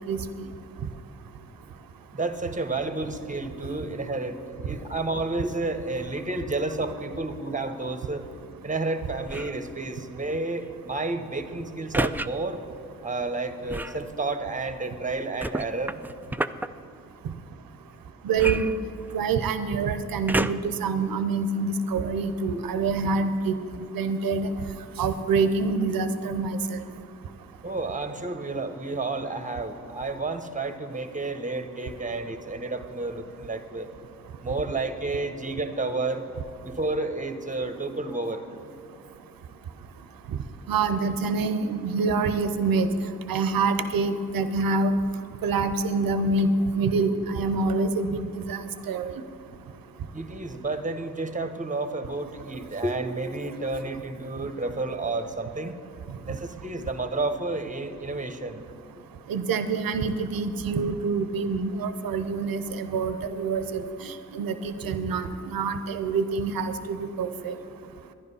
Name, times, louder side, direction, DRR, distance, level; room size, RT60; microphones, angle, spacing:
voice 1, 2.1-8.2 8.6-12.6 13.0-16.0 27.6-33.9 34.4-36.2 36.6-38.4 50.1-55.8 56.3-58.6, right 2 dB, 20° right, 8 dB, 1.1 m, -31 dB
sound 1, 9.2-9.6 11.9-12.3 13.7-14.0 15.4-16.7 18.4-19.3 20.3-20.8 21.5-21.6, right 1 dB, 5° right, 0.3 m, -30 dB
voice 2, 18.2-18.7 19.1-23.6 23.9-24.5 25.0-26.8 40.7-42.9 43.3-44.9 45.4-49.1 59.3-67.5, right 4 dB, 80° right, 10 dB, 0.7 m, -26 dB
11.0 x 10.5 x 5.5 m, 2.5 s
supercardioid pair, 40°, 35 cm